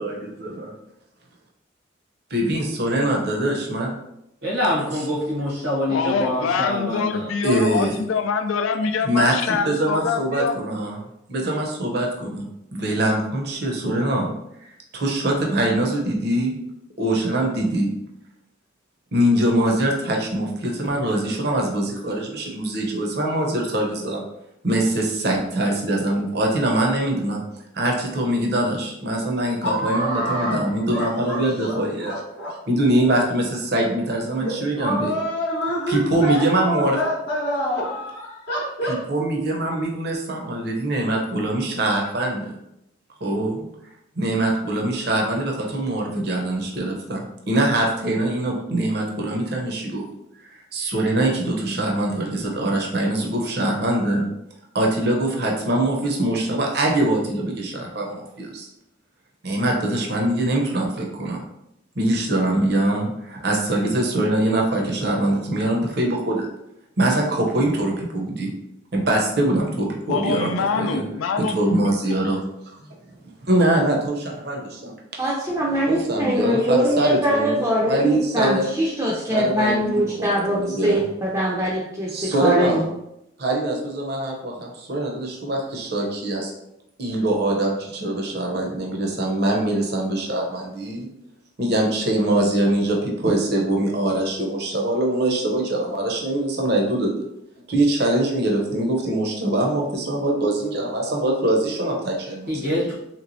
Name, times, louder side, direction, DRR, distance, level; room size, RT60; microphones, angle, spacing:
voice 1, 2.3-4.0 4.9-5.0 7.4-8.0 9.0-9.3 9.6-11.0 11.3-12.5 12.7-14.3 14.6-16.6 17.0-17.9 19.1-24.2 24.6-27.4 27.7-32.1 32.7-35.1 35.9-37.0 38.9-42.6 43.2-43.7 44.2-50.0 50.5-54.3 54.7-58.7 59.4-61.4 62.0-66.5 67.0-68.5 68.9-70.5 70.8-71.0 71.5-72.4 72.7-72.9 73.4-75.2 75.9-78.7 79.1-81.0 82.1-82.9 83.4-86.5 87.0-91.1 91.6-97.1 97.7-102.9, right 1 dB, 55° right, 0 dB, 0.7 m, -23 dB
voice 2, 4.4-7.3 102.5-102.9, left 1 dB, 75° right, -6 dB, 1.0 m, -25 dB
voice 3, 5.9-10.6 70.1-71.5 71.8-72.2, left 5 dB, 85° left, 7 dB, 0.4 m, -25 dB
voice 4, 29.6-32.5 34.4-39.0, equal, 55° left, -5 dB, 0.7 m, -27 dB
voice 5, 75.2-82.8, right 1 dB, 15° right, -6 dB, 0.4 m, -22 dB
3.3 x 3.0 x 2.6 m, 0.82 s
head